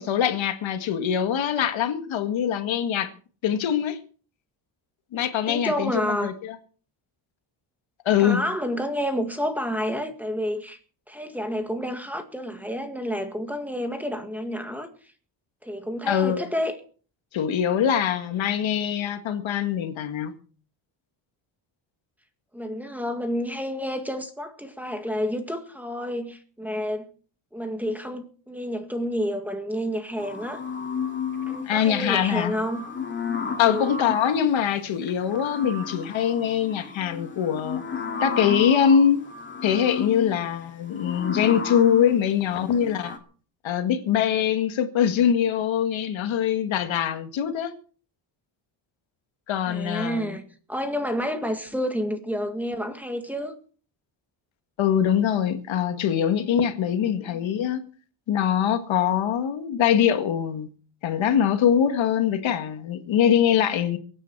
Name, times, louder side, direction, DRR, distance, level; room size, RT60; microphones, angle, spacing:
voice 1, 0.0-3.1 3.4-4.0 5.1-6.5 8.1-8.4 16.1-16.5 17.3-20.3 31.6-32.5 33.6-37.8 38.2-39.2 39.6-43.2 43.6-47.7 49.5-50.3 54.8-57.8 58.3-60.7 61.0-64.0, left 9 dB, 75° left, 1.9 m, -23 dB
voice 2, 5.5-6.3 8.2-10.8 11.1-14.9 15.6-16.8 22.5-27.1 27.5-30.6 31.5-32.9 33.6-33.9 49.7-50.4 50.7-53.6 57.0-57.4, equal, 5° right, 1.9 m, -29 dB
sound 1, 30.2-31.7 32.1-34.5 35.0-43.2, left 5 dB, 25° left, 2.3 m, -33 dB
23.5 x 9.4 x 4.7 m
cardioid pair, 155°, 47 cm